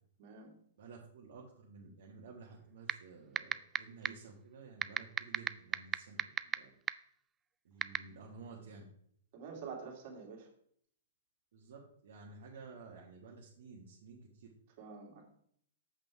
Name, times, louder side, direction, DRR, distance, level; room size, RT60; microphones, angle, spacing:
voice 1, 0.2-0.5 9.3-10.5 14.8-15.3, right 5 dB, 50° right, 0 dB, 2.7 m, -47 dB
voice 2, 0.8-6.7 7.6-8.8 11.5-14.5, right 4 dB, 65° right, -3 dB, 1.6 m, -53 dB
sound 1, 2.9-3.0 3.4-3.8 4.0-4.1 4.8-6.5 6.9-7.0 7.8-8.0, right 8 dB, 20° right, 0.3 m, -29 dB
7.8 x 5.3 x 4.7 m, 0.66 s
hypercardioid pair, 125°, 0 cm